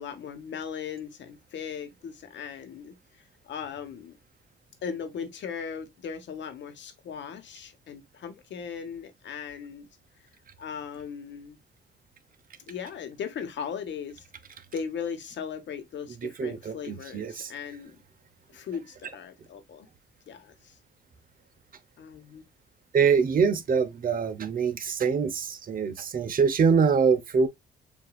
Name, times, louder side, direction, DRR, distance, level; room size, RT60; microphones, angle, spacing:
voice 1, 0.0-3.0 3.4-4.2 4.8-9.9 10.6-11.6 12.7-14.2 14.7-18.0 18.5-19.9 20.3-20.7 22.0-22.4, left 7 dB, 65° left, 1.1 m, -38 dB
voice 2, 16.2-17.5 22.9-27.5, right 5 dB, 45° right, 0.8 m, -24 dB
7.1 x 2.7 x 2.4 m
cardioid pair, 90°, 20 cm